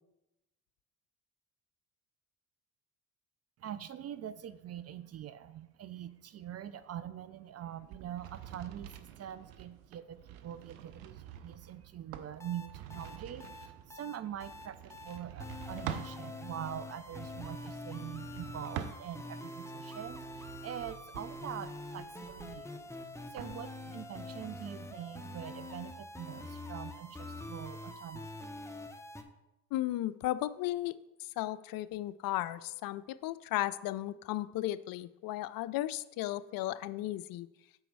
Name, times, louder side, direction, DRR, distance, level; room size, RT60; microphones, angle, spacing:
voice 1, 3.6-22.8 23.2-28.4, right 10 dB, 40° right, 14 dB, 0.5 m, -44 dB
sound 1, 7.8-16.2 17.0-19.4 19.9-23.6, right 10 dB, 80° right, 0.6 m, -47 dB
sound 2, 12.4-29.2, left 1 dB, 5° left, 0.9 m, -45 dB
voice 2, 29.7-31.0 31.4-37.5, left 15 dB, 60° left, 16 dB, 0.5 m, -35 dB
6.9 x 4.5 x 5.3 m, 0.94 s
hypercardioid pair, 55°, 40 cm